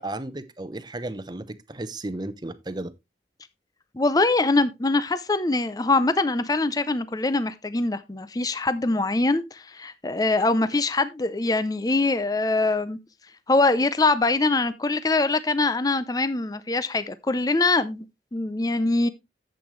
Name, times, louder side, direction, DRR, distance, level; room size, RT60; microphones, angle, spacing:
voice 1, 0.0-2.9, right 2 dB, 25° right, 0.8 m, -34 dB
voice 2, 3.9-13.0 13.5-18.1 18.3-19.1, left 3 dB, 20° left, 0.5 m, -23 dB
10.5 x 7.9 x 3.2 m
head